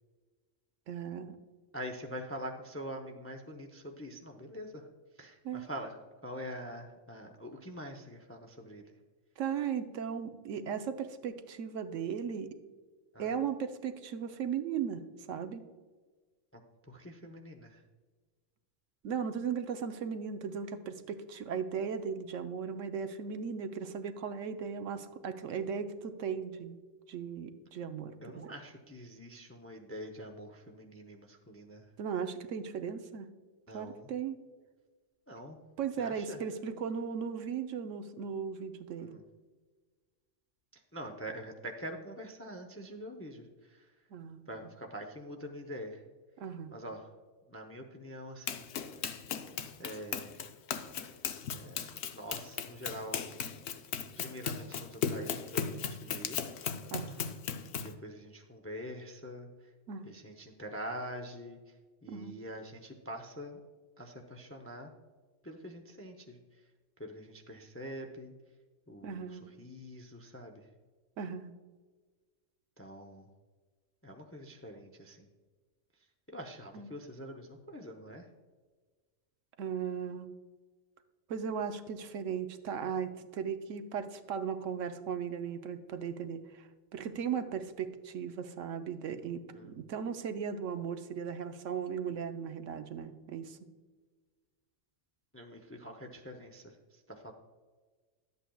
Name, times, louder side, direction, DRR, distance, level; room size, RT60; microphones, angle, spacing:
voice 1, 0.9-1.4 5.4-5.7 9.4-12.5 13.2-15.0 15.3-15.6 19.0-26.8 27.1-28.5 32.0-33.3 33.7-34.4 35.8-39.2 44.1-44.5 46.4-46.7 56.9-57.3 59.9-60.1 62.1-62.3 69.0-69.4 71.2-71.5 76.7-76.9 79.6-80.3 81.3-93.6, right 7 dB, 80° right, 8 dB, 1.0 m, -37 dB
voice 2, 1.7-4.9 5.2-6.0 6.2-8.9 13.1-13.3 16.5-16.6 16.9-17.8 28.2-31.9 33.7-34.1 35.3-35.6 36.0-36.4 39.0-39.2 40.7-44.0 44.5-46.0 46.7-47.1 47.5-48.7 49.8-50.4 51.5-53.3 54.2-56.5 57.8-59.7 60.0-61.8 62.0-63.6 64.0-64.9 65.4-66.6 67.0-68.3 68.9-70.7 72.8-73.3 74.0-75.3 76.3-78.3 89.5-89.8 95.3-97.3, equal, 20° left, 4 dB, 0.4 m, -45 dB
Run, 48.5-58.0, left 7 dB, 65° left, 0.8 m, -37 dB
11.5 x 8.1 x 2.3 m, 1.4 s
omnidirectional pair, 1.3 m